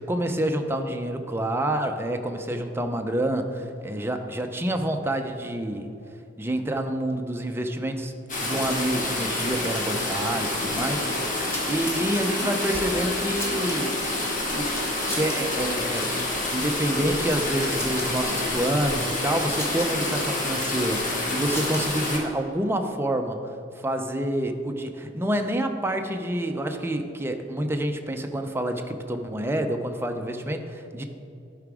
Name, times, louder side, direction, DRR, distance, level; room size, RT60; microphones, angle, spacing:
voice 1, 0.0-5.9 6.4-13.9 14.5-14.7 15.1-16.1 16.5-23.4 23.8-31.0, right 1 dB, 15° right, 5 dB, 0.6 m, -28 dB
sound 1, 8.3-22.2, left 2 dB, 45° left, 1.5 m, -28 dB
sound 2, 11.4-12.0 12.8-14.1 14.7-15.4 15.6-15.8 16.5-16.8 17.1-18.1 19.3-19.9 20.9-22.0, equal, 15° left, 1.6 m, -37 dB
12.0 x 4.9 x 4.8 m, 2.8 s
head